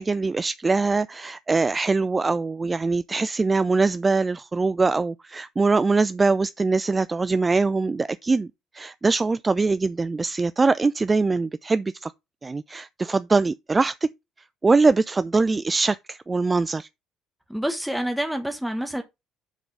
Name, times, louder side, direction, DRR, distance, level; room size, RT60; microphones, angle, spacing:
voice 1, 0.0-8.5 8.7-12.1 12.4-14.1 14.6-16.9, right 3 dB, 25° right, 0.4 m, -22 dB
voice 2, 17.5-19.0, equal, 5° right, 1.2 m, -27 dB
8.1 x 3.9 x 5.6 m
supercardioid pair, 70°, 0 cm